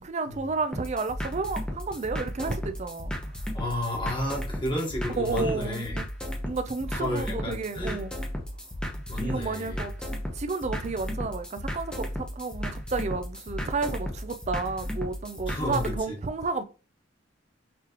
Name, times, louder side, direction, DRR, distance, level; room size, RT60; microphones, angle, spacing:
voice 1, 0.0-3.1 5.2-6.1 6.4-8.1 9.2-16.6, right 4 dB, 35° right, 0.4 m, -31 dB
sound 1, 0.7-16.0, equal, 5° left, 0.9 m, -35 dB
voice 2, 3.5-6.0 6.9-8.0 9.1-9.8 15.5-16.2, left 1 dB, 25° left, 1.3 m, -32 dB
5.9 x 3.1 x 2.9 m
head